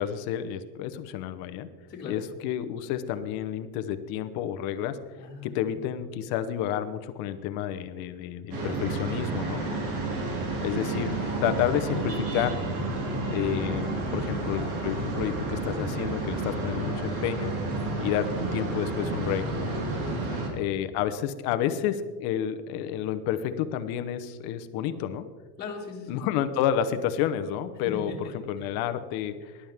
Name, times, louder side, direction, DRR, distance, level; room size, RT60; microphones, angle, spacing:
voice 1, 0.0-1.7 2.0-5.0 5.4-9.6 10.6-12.6 13.3-17.5 18.0-19.8 20.5-25.3 26.1-29.5, left 10 dB, 55° left, 10 dB, 1.1 m, -30 dB
voice 2, 5.2-5.8 9.6-10.0 14.0-14.3 17.6-17.9 20.0-20.5 25.6-26.2 27.8-28.7, left 3 dB, 20° left, -6 dB, 2.4 m, -40 dB
sound 1, 8.5-20.5, right 2 dB, 75° right, 4.2 m, -30 dB
20.5 x 11.5 x 3.6 m, 1.4 s
supercardioid pair, 150°, 44 cm